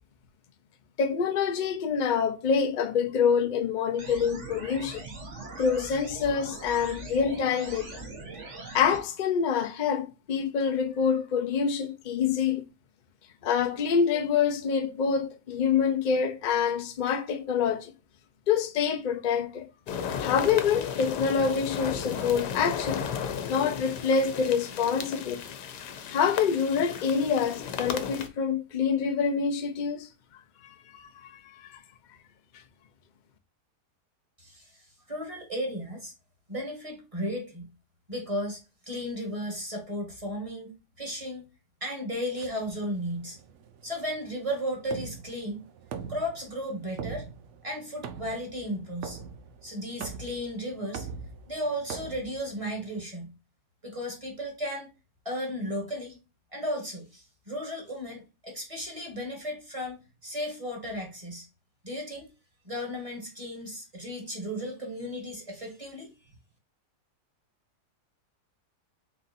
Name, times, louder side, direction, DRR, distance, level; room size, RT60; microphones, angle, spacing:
voice 1, 1.0-5.0 5.6-8.1 8.7-12.6 13.4-17.9 18.5-19.7 20.2-23.1 23.5-25.4 26.1-30.1 30.6-31.8, left 6 dB, 65° left, 0.4 m, -26 dB
sound 1, 4.0-9.0, right 2 dB, 50° right, 1.4 m, -41 dB
sound 2, 19.9-28.3, left 7 dB, 90° left, 1.3 m, -35 dB
voice 2, 34.4-36.1 36.5-37.7 38.1-38.6 38.9-41.5 41.8-43.4 43.8-45.7 46.1-47.3 47.6-49.2 49.6-51.1 51.5-53.3 53.8-54.9 55.2-56.2 56.5-61.5 61.8-62.3 62.6-66.1, equal, 20° right, 1.4 m, -35 dB
sound 3, 42.4-53.0, right 6 dB, 65° right, 0.7 m, -43 dB
4.2 x 4.0 x 2.6 m
omnidirectional pair, 1.7 m